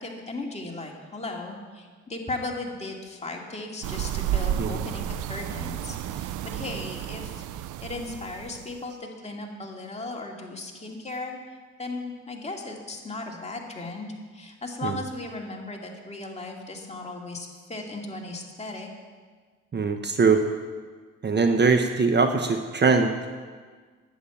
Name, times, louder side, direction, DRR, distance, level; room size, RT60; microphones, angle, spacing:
voice 1, 0.0-11.4 11.8-18.9, left 2 dB, 20° left, 0 dB, 2.4 m, -36 dB
sound 1, 3.8-8.8, right 11 dB, 80° right, 0.6 m, -32 dB
voice 2, 19.7-20.4 21.2-23.1, right 4 dB, 35° right, 6 dB, 1.0 m, -21 dB
11.0 x 8.7 x 9.2 m, 1.5 s
cardioid pair, 90°, 30 cm